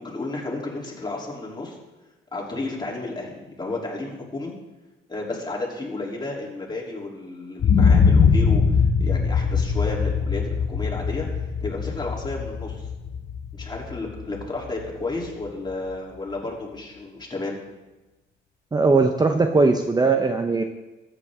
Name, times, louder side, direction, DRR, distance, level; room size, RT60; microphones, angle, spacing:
voice 1, 0.0-1.8 2.3-4.5 5.1-8.6 9.0-12.9 13.5-17.6, left 2 dB, 20° left, -3 dB, 3.2 m, -32 dB
sound 1, 7.6-15.5 15.9-16.0, left 5 dB, 55° left, 1.0 m, -22 dB
voice 2, 18.7-20.6, right 3 dB, 20° right, 6 dB, 0.7 m, -19 dB
14.5 x 8.4 x 3.7 m, 1.1 s
cardioid pair, 90°, 20 cm